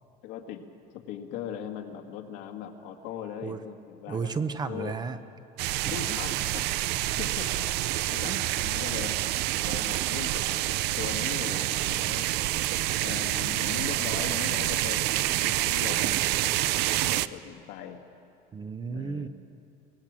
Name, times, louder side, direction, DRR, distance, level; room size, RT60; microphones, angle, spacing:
voice 1, 0.2-0.7 0.9-4.3 4.7-5.0 5.9-6.7 7.2-9.2 9.6-10.7 11.0-12.3 13.0-16.8 17.1-18.0 18.9-19.3, left 9 dB, 80° left, 3 dB, 2.0 m, -39 dB
voice 2, 4.1-5.2 5.8-6.2 8.2-8.4 15.9-16.1 18.5-19.3, right 5 dB, 20° right, 10 dB, 0.7 m, -33 dB
sound 1, 5.6-17.3, right 15 dB, 65° right, 0.5 m, -28 dB
25.0 x 18.5 x 7.6 m, 2.6 s
cardioid pair, 160°, 18 cm